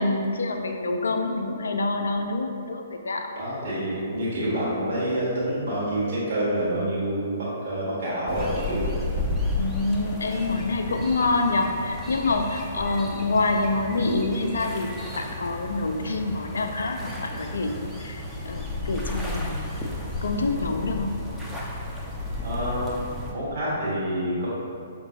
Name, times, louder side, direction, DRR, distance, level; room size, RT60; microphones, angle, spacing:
voice 1, 0.0-3.3 9.5-19.7 20.2-21.2, left 3 dB, 65° left, 5 dB, 0.4 m, -26 dB
voice 2, 3.3-7.3 7.6-8.9 22.4-22.9 23.3-24.5, right 1 dB, 50° right, -10 dB, 1.4 m, -27 dB
sound 1, 8.3-23.3, left 2 dB, ahead, 0.5 m, -33 dB
5.9 x 2.9 x 2.7 m, 2.3 s
figure-of-eight pair, 120°, 0 cm